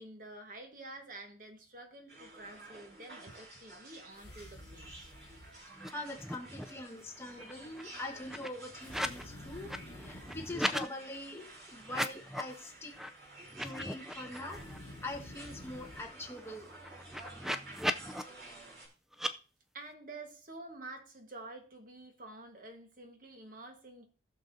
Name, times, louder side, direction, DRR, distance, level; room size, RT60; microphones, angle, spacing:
voice 1, 0.0-5.1 19.7-24.1, right 2 dB, 50° right, 1.4 m, -49 dB
sound 1, 2.1-18.9, right 2 dB, 70° right, 4.9 m, -52 dB
sound 2, 4.1-5.6 8.8-10.6 14.4-16.1, left 1 dB, 85° left, 1.1 m, -50 dB
voice 2, 5.6-12.9 13.6-14.6 15.0-16.7, left 2 dB, 15° left, 1.4 m, -43 dB
sound 3, 5.8-5.9 6.2-6.8 7.2-9.2 9.5-10.9 11.8-12.6 13.0-13.1 13.5-14.8 15.2-15.3 15.5-18.2 19.1-19.3, equal, ahead, 0.4 m, -38 dB
19.0 x 6.5 x 2.7 m
head